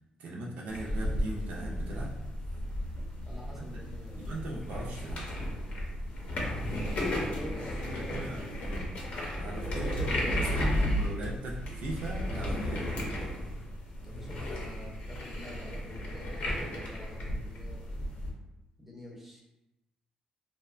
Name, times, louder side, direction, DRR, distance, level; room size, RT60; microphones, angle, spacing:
voice 1, 0.2-2.1 3.5-3.8 4.1-5.3 7.9-12.9, right 2 dB, 75° right, -3 dB, 0.4 m, -39 dB
sound 1, 0.7-18.3, left 1 dB, 60° left, 0.6 m, -34 dB
voice 2, 3.3-4.4 6.7-8.3 9.7-10.8 13.0-13.2 14.0-17.8 18.8-19.5, equal, 10° right, -2 dB, 0.5 m, -45 dB
2.7 x 2.1 x 2.4 m, 0.95 s
cardioid pair, 140°, 3 cm